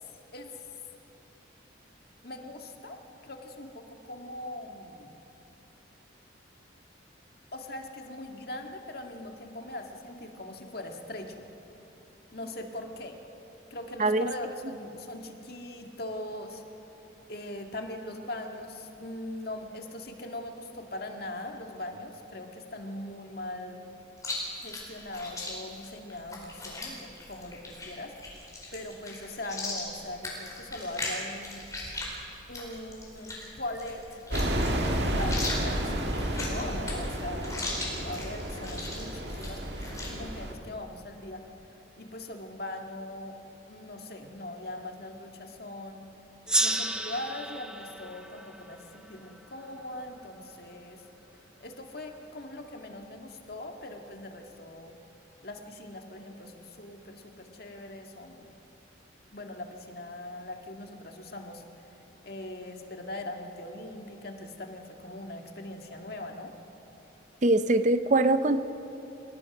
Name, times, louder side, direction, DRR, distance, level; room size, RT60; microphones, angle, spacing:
voice 1, 2.2-5.1 7.5-11.4 12.3-13.2 13.7-16.6 17.3-23.8 24.6-28.1 28.7-31.7 32.5-41.5 42.0-43.4 43.7-46.1 46.6-51.0 51.6-55.0 55.4-58.5 59.3-61.6 62.2-66.5, left 1 dB, 50° left, 3 dB, 1.9 m, -41 dB
voice 2, 14.0-14.3 67.4-68.6, right 2 dB, 40° right, 11 dB, 0.6 m, -23 dB
Chewing mastication, 24.2-40.1, left 2 dB, 15° left, 4.5 m, -39 dB
sound 1, 34.3-40.5, right 1 dB, 60° right, 2.0 m, -31 dB
Gong, 46.5-49.6, right 1 dB, 5° right, 0.8 m, -32 dB
28.5 x 17.5 x 6.1 m, 3.0 s
head